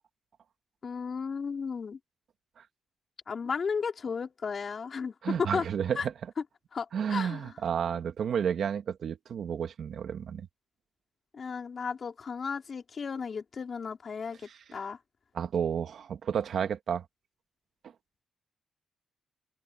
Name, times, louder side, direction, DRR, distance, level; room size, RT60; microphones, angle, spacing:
voice 1, 0.8-2.0 3.3-5.6 6.0-6.1 6.7-7.5 11.3-14.4 14.7-15.0, left 5 dB, 45° left, 4.2 m, -34 dB
voice 2, 5.2-6.1 6.9-10.5 14.5-14.6 15.3-17.0 17.8-17.9, right 8 dB, 65° right, 2.0 m, -31 dB
cardioid pair, 100°, 0 cm